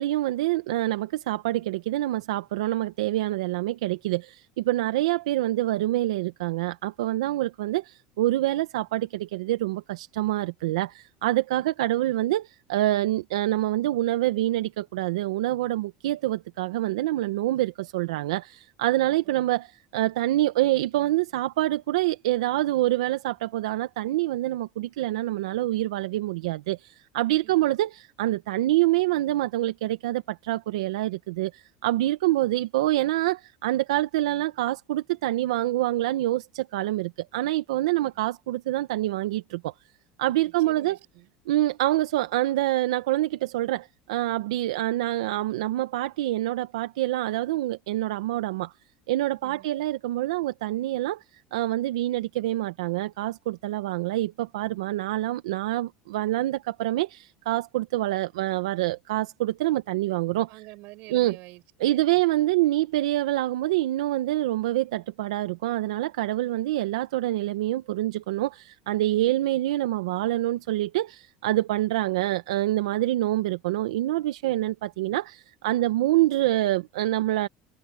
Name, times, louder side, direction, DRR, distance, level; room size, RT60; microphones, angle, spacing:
voice 1, 0.0-39.7 40.2-41.0 41.5-48.7 49.1-60.5 61.1-61.4 61.8-77.5, right 15 dB, 90° right, 0.9 m, -26 dB
voice 2, 40.4-41.3 49.4-49.7 60.5-62.2, right 22 dB, 65° right, 5.1 m, -48 dB
supercardioid pair, 105°, 3 cm